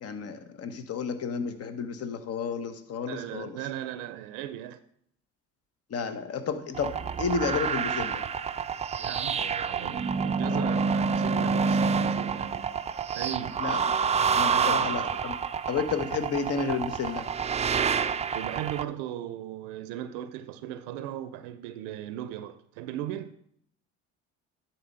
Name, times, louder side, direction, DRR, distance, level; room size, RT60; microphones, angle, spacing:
voice 1, 0.0-3.6 5.9-8.2 13.6-13.8 14.3-15.3 15.7-17.3, left 5 dB, 50° left, 1.0 m, -31 dB
voice 2, 3.1-4.8 9.0-12.7 13.2-13.6 14.4-15.0 18.3-23.4, right 11 dB, 90° right, 0.5 m, -37 dB
sound 1, 6.7-18.8, right 5 dB, 20° right, 0.4 m, -28 dB
10.5 x 4.3 x 5.4 m
supercardioid pair, 75°, 32 cm